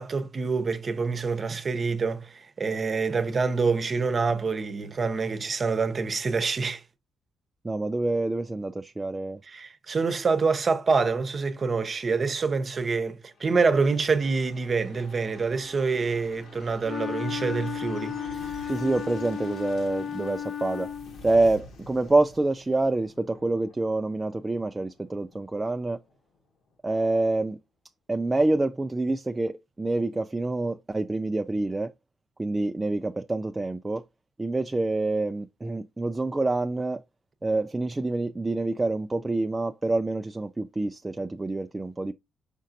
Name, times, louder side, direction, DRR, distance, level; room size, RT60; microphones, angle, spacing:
voice 1, 0.0-6.8 9.5-18.7, right 4 dB, 40° right, 0.9 m, -26 dB
voice 2, 7.6-9.4 18.7-20.9 21.2-26.0 26.8-27.6 28.1-31.9 32.4-34.0 34.4-37.0 37.4-42.1, right 2 dB, 20° right, 0.3 m, -27 dB
sound 1, 13.3-26.7 27.0-27.1, left 3 dB, 70° left, 1.4 m, -49 dB
Wind instrument woodwind instrument, 16.8-21.3, left 8 dB, 50° left, 0.7 m, -34 dB
5.3 x 3.8 x 2.6 m
cardioid pair, 90°, 0 cm